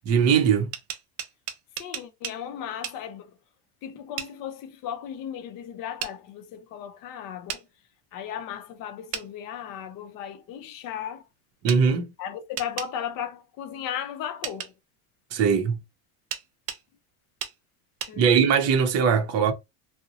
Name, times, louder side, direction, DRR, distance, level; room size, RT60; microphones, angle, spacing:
voice 1, 0.1-0.7 11.6-12.1 15.3-15.8 18.2-19.5, right 6 dB, 35° right, 0.6 m, -20 dB
sound 1, 0.5-2.4 2.8-3.0 4.2-4.3 6.0-6.1 7.5-7.6 9.1-9.3 11.7-11.8 12.6-12.9 14.4-14.7 16.3-16.8 17.4-17.6 18.0-18.1, right 10 dB, 65° right, 0.7 m, -34 dB
voice 2, 1.8-3.4 3.8-7.7 8.1-11.2 12.2-14.7 18.1-18.4, left 9 dB, 45° left, 0.6 m, -36 dB
2.6 x 2.0 x 2.6 m
supercardioid pair, 125°, 47 cm